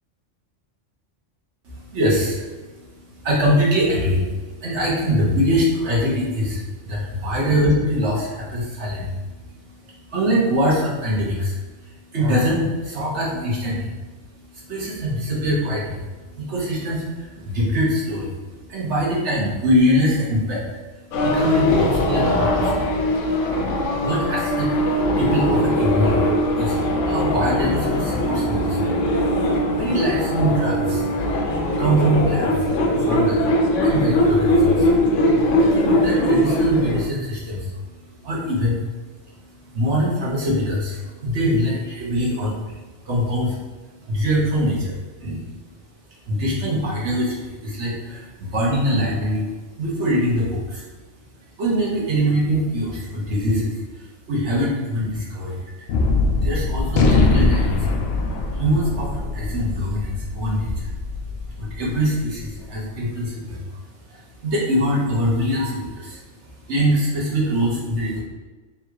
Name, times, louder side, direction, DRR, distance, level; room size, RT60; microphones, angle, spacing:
voice 1, 1.6-42.8 43.0-43.6 44.0-45.4 46.2-49.4 49.8-50.8 51.6-55.7 56.3-57.9 58.5-60.9 61.6-63.8 64.1-68.2, equal, 70° right, -5 dB, 1.3 m, -24 dB
sound 1, 21.1-37.0, equal, 85° left, 1.0 m, -20 dB
Gunshot gunfire, 55.9-62.5, left 3 dB, 65° left, 0.7 m, -22 dB
3.6 x 2.4 x 4.5 m, 1.3 s
omnidirectional pair, 1.2 m